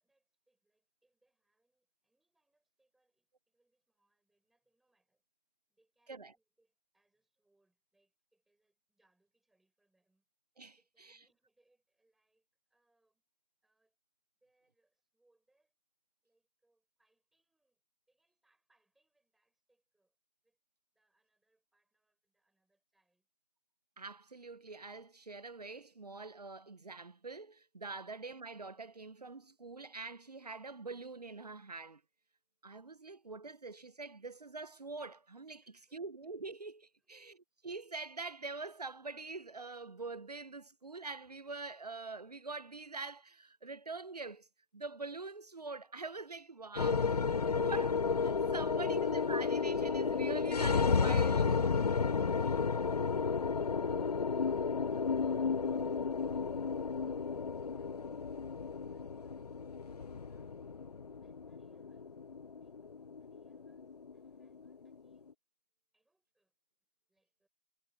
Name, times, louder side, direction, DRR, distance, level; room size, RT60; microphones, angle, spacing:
voice 1, 0.0-5.3 5.7-10.3 10.7-13.2 13.6-14.0 14.4-15.8 16.2-20.2 20.4-20.6 20.9-23.3 35.6-36.0 37.0-37.3 61.2-62.1 62.6-65.4 65.9-66.5 67.1-67.5, right 2 dB, ahead, 7.2 m, -81 dB
voice 2, 10.6-11.2 24.0-32.0 32.6-35.6 35.9-37.4 37.6-44.5 44.7-47.9 48.2-51.8, right 3 dB, 80° right, 0.9 m, -45 dB
sound 1, 46.8-65.1, left 5 dB, 75° left, 0.5 m, -32 dB
figure-of-eight pair, 165°, 20 cm